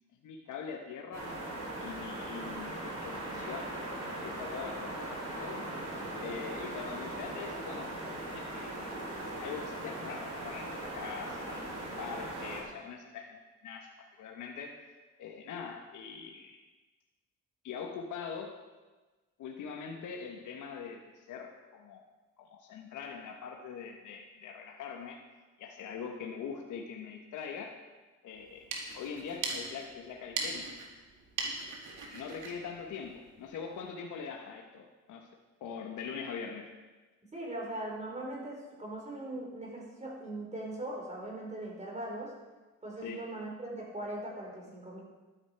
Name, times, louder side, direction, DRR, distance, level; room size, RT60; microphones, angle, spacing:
voice 1, 0.2-1.3 1.8-5.7 6.2-11.7 12.0-14.9 15.2-16.6 17.6-18.6 19.4-22.1 22.4-25.2 25.6-27.8 28.2-28.7 28.9-30.7 32.1-35.3 35.6-36.7 43.0-43.3, left 6 dB, 80° left, 3 dB, 1.2 m, -43 dB
sound 1, 1.1-12.6, right 1 dB, 60° right, 4.6 m, -39 dB
sound 2, 28.4-33.7, right 3 dB, 85° right, 2.1 m, -40 dB
voice 2, 37.3-42.3 42.8-45.0, right 1 dB, 25° right, -2 dB, 4.4 m, -40 dB
12.5 x 9.8 x 4.6 m, 1.2 s
cardioid pair, 90°, 30 cm